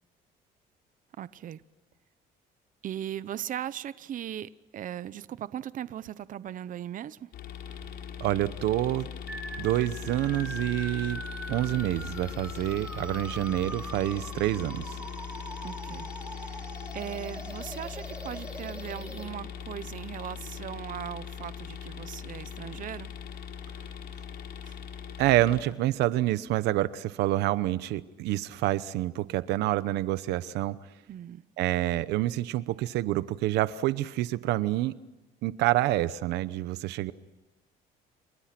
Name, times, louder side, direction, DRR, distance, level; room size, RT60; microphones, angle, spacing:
voice 1, 1.2-1.6 2.8-7.3 15.6-16.1 16.4-16.7 16.9-23.1 24.6-24.8 31.1-31.4, right 11 dB, 50° right, 0.9 m, -38 dB
sound 1, 7.3-25.6, left 8 dB, 70° left, 4.2 m, -40 dB
voice 2, 8.2-9.1 9.6-11.2 11.5-15.0 25.2-30.8 31.6-34.9 35.4-37.1, right 15 dB, 85° right, 0.9 m, -27 dB
sound 2, 9.3-19.3, right 1 dB, 5° right, 5.8 m, -42 dB
29.5 x 28.0 x 6.0 m
cardioid pair, 110°, 17 cm